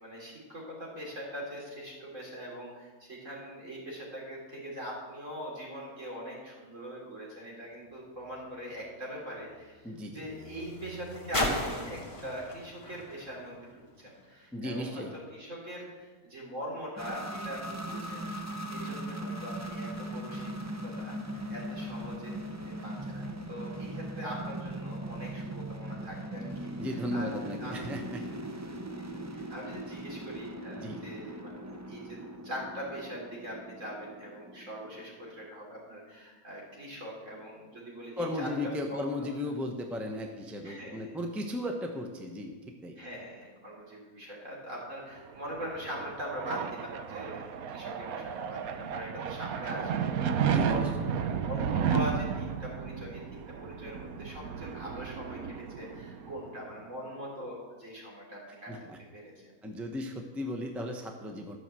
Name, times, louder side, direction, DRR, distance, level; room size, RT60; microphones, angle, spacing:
voice 1, 0.0-15.0 15.3-27.9 28.2-28.3 28.9-38.5 38.9-39.0 40.6-41.2 43.0-50.8 51.2-58.9 59.1-59.5, equal, 60° right, -4 dB, 4.0 m, -42 dB
sound 1, 7.8-14.3 15.1-15.2, left 1 dB, 20° left, 2.0 m, -38 dB
voice 2, 9.8-10.3 14.5-15.1 26.8-28.2 30.8-31.0 38.2-42.6 42.8-43.0 50.4-51.0 58.7-59.0 59.6-61.6, left 1 dB, ahead, 3 dB, 0.9 m, -36 dB
sound 2, 17.0-35.5, right 1 dB, 20° right, 0.4 m, -40 dB
sound 3, 45.3-56.6, right 7 dB, 75° right, 1.2 m, -33 dB
13.0 x 6.4 x 7.6 m, 1.4 s
omnidirectional pair, 1.5 m